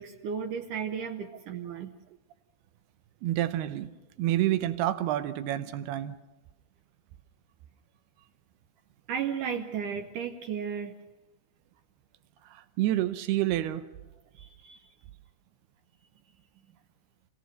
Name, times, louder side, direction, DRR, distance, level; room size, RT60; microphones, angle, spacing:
voice 1, 0.0-1.9 9.1-10.9 14.3-14.8, right 7 dB, 70° right, 2.2 m, -34 dB
voice 2, 3.2-3.9 4.2-6.1 12.5-13.8, right 13 dB, 85° right, 2.9 m, -28 dB
28.5 x 17.5 x 6.5 m
omnidirectional pair, 4.5 m